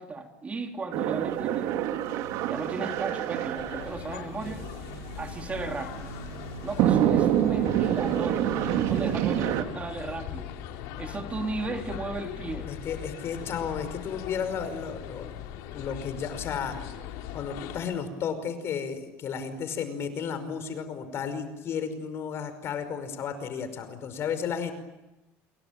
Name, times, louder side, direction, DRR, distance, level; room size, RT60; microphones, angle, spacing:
voice 1, 0.0-1.8 2.5-4.6 5.2-6.1 6.6-10.5 11.0-12.7, right 3 dB, 20° right, 4 dB, 3.4 m, -35 dB
sound 1, 0.9-9.6, right 11 dB, 70° right, 2.5 m, -28 dB
sound 2, 3.6-17.8, left 10 dB, 80° left, 3.9 m, -40 dB
voice 2, 12.7-15.3 15.7-16.8 17.3-24.7, left 7 dB, 45° left, 10 dB, 5.4 m, -33 dB
28.0 x 23.5 x 8.9 m, 1.0 s
cardioid pair, 130°, 6 cm